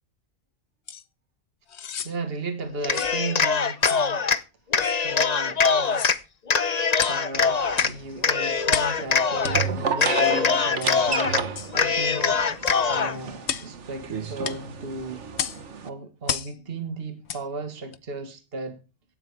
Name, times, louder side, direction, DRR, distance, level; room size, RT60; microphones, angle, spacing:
sound 1, 0.9-1.0 1.7-2.1 2.9-3.2 3.8-4.1 4.8-5.0 5.8-6.2 7.0-7.2 7.7-8.0 8.7-9.0 9.4-9.6 10.0-10.2 10.8-11.0 11.6-11.7 12.7-12.8 13.4-13.7 14.4-14.6 15.4-15.6 16.3-16.5 17.3-17.4 17.9-18.0, left 8 dB, 65° left, 1.2 m, -32 dB
voice 1, 2.0-4.2 5.0-6.1 7.1-12.4 12.9-15.2 15.8-18.8, right 3 dB, 50° right, 2.0 m, -35 dB
Cheering, 2.8-4.4 4.7-6.2 6.5-7.9 8.2-9.7 9.9-11.4 11.7-13.2, left 5 dB, 35° left, 0.9 m, -23 dB
sound 2, 7.3-15.9, right 5 dB, 70° right, 1.6 m, -32 dB
17.0 x 13.0 x 3.5 m
omnidirectional pair, 1.2 m